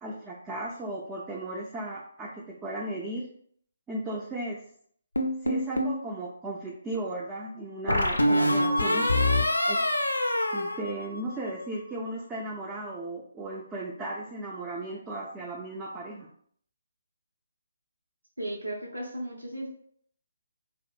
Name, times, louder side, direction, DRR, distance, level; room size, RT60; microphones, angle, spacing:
voice 1, 0.0-3.3 3.9-4.6 5.4-9.1 9.7-9.8 10.5-16.3, right 1 dB, 10° right, -3 dB, 0.3 m, -36 dB
sound 1, 5.2-6.0 7.9-11.5, left 1 dB, 80° left, 0.3 m, -25 dB
voice 2, 18.4-19.7, right 1 dB, 90° right, -2 dB, 0.5 m, -35 dB
2.6 x 2.5 x 2.3 m, 0.63 s
figure-of-eight pair, 140°, 0 cm